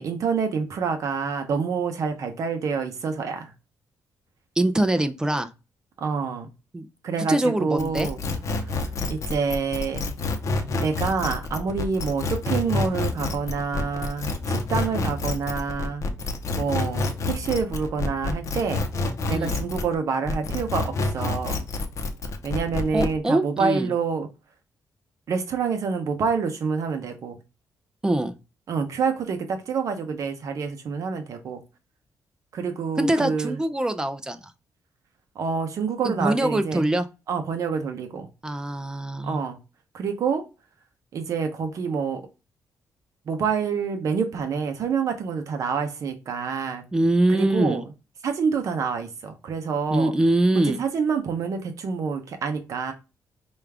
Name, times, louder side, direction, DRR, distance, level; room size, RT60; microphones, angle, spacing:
voice 1, 0.0-3.5 6.0-6.5 7.0-8.2 8.7-8.8 9.1-10.1 10.8-16.0 16.5-18.8 19.3-21.6 22.4-24.3 25.3-27.4 28.7-31.6 32.5-33.6 35.4-36.9 37.3-38.3 39.2-39.6 39.9-40.4 41.1-42.2 43.3-46.8 47.3-47.8 48.2-50.1 50.7-52.9, right 5 dB, 60° right, 0.7 m, -27 dB
voice 2, 4.6-5.5 6.7-6.9 7.3-8.1 19.3-19.5 22.9-23.9 28.0-28.3 33.0-34.4 36.0-37.1 38.4-39.4 46.9-47.8 49.9-50.8, right 1 dB, 10° right, 0.4 m, -23 dB
sound 1, 7.8-19.9 20.3-23.1, left 3 dB, 55° left, 0.7 m, -28 dB
5.0 x 2.4 x 3.3 m
cardioid pair, 140°, 6 cm